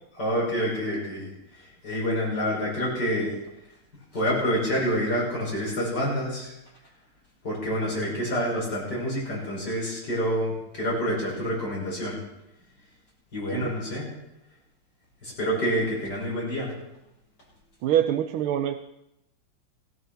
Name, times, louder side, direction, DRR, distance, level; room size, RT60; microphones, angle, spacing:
voice 1, 0.2-1.3 1.8-3.3 4.1-6.5 7.4-12.2 13.3-14.1 15.2-16.7, equal, 50° left, -4 dB, 6.6 m, -27 dB
voice 2, 17.8-18.8, right 10 dB, 80° right, 6 dB, 1.5 m, -25 dB
16.5 x 14.0 x 4.4 m, 0.84 s
omnidirectional pair, 2.3 m